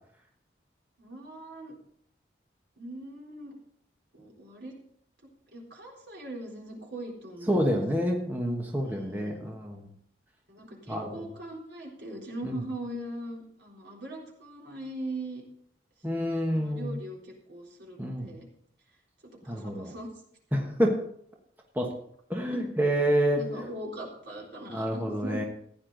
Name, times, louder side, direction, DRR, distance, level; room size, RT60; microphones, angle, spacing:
voice 1, 1.0-1.7 2.8-3.6 4.1-4.7 5.5-8.2 8.8-9.4 10.5-15.4 16.5-18.5 19.4-20.1 22.5-22.6 23.3-25.4, right 1 dB, 70° right, -2 dB, 3.8 m, -41 dB
voice 2, 7.5-9.9 10.9-11.3 12.4-12.6 16.0-17.0 18.0-18.3 19.5-19.9 20.5-21.0 21.7-21.9 22.3-23.4 24.7-25.4, equal, 10° right, 0 dB, 1.3 m, -28 dB
15.0 x 9.8 x 4.0 m, 0.67 s
head